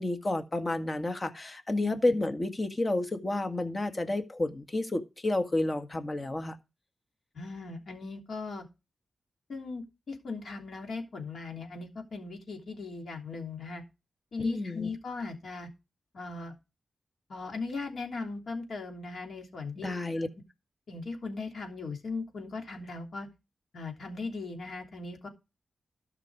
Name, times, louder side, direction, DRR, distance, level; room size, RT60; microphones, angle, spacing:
voice 1, 0.0-6.6 14.4-14.9 19.8-20.3, left 2 dB, 35° left, 1.9 m, -30 dB
voice 2, 7.3-8.6 9.5-13.8 14.3-15.7 16.1-16.5 17.3-20.2 20.9-23.3 23.7-25.3, left 3 dB, 75° left, 3.1 m, -38 dB
13.0 x 6.0 x 4.9 m
cardioid pair, 45°, 0 cm